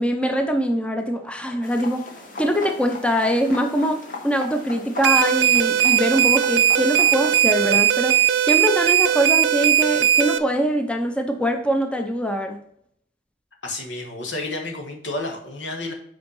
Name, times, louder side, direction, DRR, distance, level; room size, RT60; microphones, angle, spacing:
voice 1, 0.0-2.0 2.4-12.6, equal, 5° left, 4 dB, 0.6 m, -23 dB
sound 1, 1.6-7.4, left 1 dB, 50° left, 1.2 m, -37 dB
sound 2, 5.0-10.4, right 11 dB, 80° right, 0.4 m, -18 dB
voice 2, 13.6-15.9, left 2 dB, 85° left, 2 dB, 1.4 m, -30 dB
5.2 x 4.6 x 5.5 m, 0.69 s
head